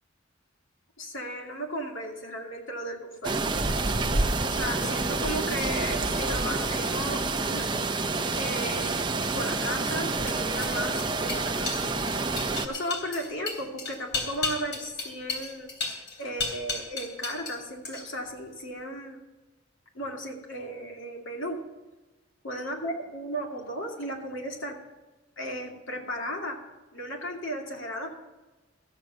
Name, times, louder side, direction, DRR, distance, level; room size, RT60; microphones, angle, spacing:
voice 1, 1.0-3.4 4.4-7.7 8.3-11.8 12.6-15.7 16.2-19.2 19.9-21.6 22.4-24.8 25.4-26.6 26.9-28.2, equal, 75° left, 0 dB, 2.5 m, -35 dB
sound 1, 3.2-12.7, right 3 dB, 25° right, 0.7 m, -28 dB
sound 2, 9.8-17.6 17.8-18.3, left 3 dB, 60° left, 3.5 m, -35 dB
14.0 x 7.4 x 6.4 m, 1.1 s
head